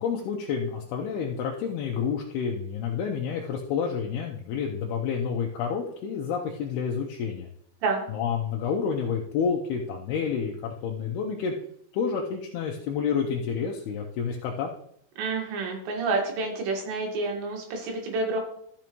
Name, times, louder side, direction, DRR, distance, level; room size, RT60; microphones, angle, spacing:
voice 1, 0.0-7.5 8.1-11.5 11.9-14.7, left 6 dB, 80° left, 0 dB, 2.6 m, -29 dB
voice 2, 15.2-18.4, right 3 dB, 80° right, 1 dB, 3.9 m, -28 dB
13.5 x 6.1 x 3.0 m, 0.69 s
omnidirectional pair, 4.9 m